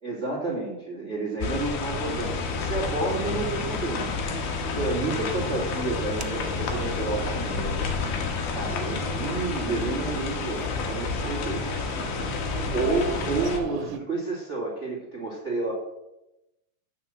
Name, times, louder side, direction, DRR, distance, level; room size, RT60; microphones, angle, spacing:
voice 1, 0.0-4.1 4.6-7.9 8.5-12.0 12.7-15.7, right 3 dB, 35° right, -4 dB, 1.1 m, -30 dB
sound 1, 1.4-13.6, left 5 dB, 70° left, 2.1 m, -30 dB
sound 2, 2.0-9.4, equal, 50° left, 2.9 m, -39 dB
sound 3, 5.2-14.0, right 9 dB, 90° right, 3.1 m, -40 dB
7.3 x 6.5 x 7.6 m, 0.93 s
omnidirectional pair, 5.6 m